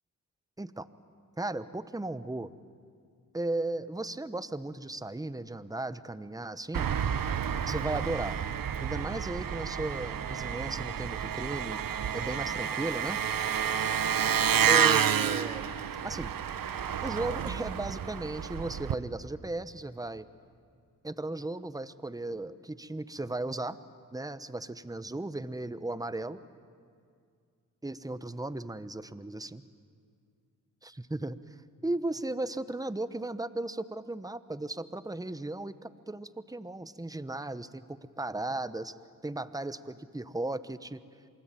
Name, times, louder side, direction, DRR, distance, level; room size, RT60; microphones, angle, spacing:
voice 1, 0.6-0.9 1.4-2.5 3.3-6.9 7.7-8.4 8.8-11.8 12.1-13.2 14.7-15.6 16.0-16.3 17.0-20.3 21.0-23.8 24.1-26.4 27.8-29.6 30.8-31.4 31.8-39.0 39.2-41.0, right 2 dB, 10° right, 14 dB, 1.1 m, -36 dB
Engine, 6.7-18.9, right 8 dB, 75° right, 1.1 m, -30 dB
27.5 x 24.0 x 9.2 m, 2.2 s
cardioid pair, 55°, 35 cm